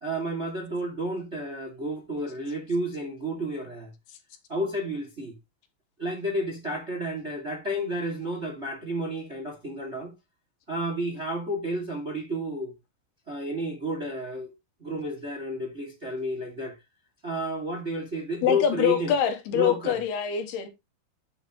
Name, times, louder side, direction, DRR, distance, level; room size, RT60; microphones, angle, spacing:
voice 1, 0.0-3.9 4.5-5.3 6.0-10.1 10.7-12.7 13.3-14.5 14.8-16.8 17.2-19.1 19.5-20.0, equal, 25° right, 1.6 m, -31 dB
voice 2, 18.4-20.7, left 9 dB, 75° left, 2.9 m, -25 dB
10.0 x 7.9 x 3.1 m
omnidirectional pair, 4.9 m